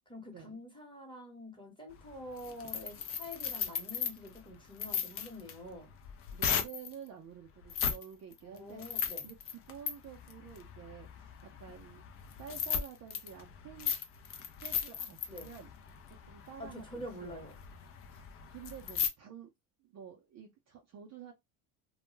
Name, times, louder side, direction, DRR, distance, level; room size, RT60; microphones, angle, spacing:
voice 1, 0.1-5.9 8.4-9.3 15.3-15.5 16.6-17.6, left 1 dB, 10° left, 1.0 m, -46 dB
sound 1, 1.9-6.9 7.6-8.0 8.3-19.1, left 7 dB, 30° left, 0.4 m, -37 dB
voice 2, 6.3-12.0 12.4-14.0 14.4-15.7 16.1-17.5 18.1-19.5 19.8-21.3, right 8 dB, 35° right, 0.5 m, -50 dB
2.2 x 2.1 x 3.1 m
supercardioid pair, 110°, 46 cm